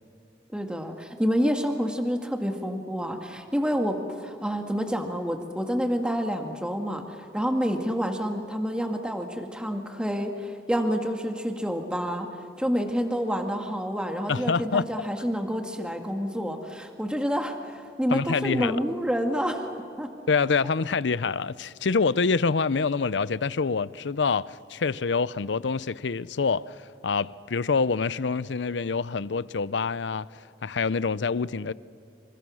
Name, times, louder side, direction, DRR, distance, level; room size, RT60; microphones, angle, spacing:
voice 1, 0.5-12.3 12.6-19.7 20.0-20.1, equal, 5° right, 1.8 m, -28 dB
voice 2, 14.3-14.9 18.1-18.8 20.3-26.8 27.0-30.3 30.6-31.7, left 4 dB, 90° left, 0.6 m, -26 dB
29.0 x 29.0 x 6.3 m
head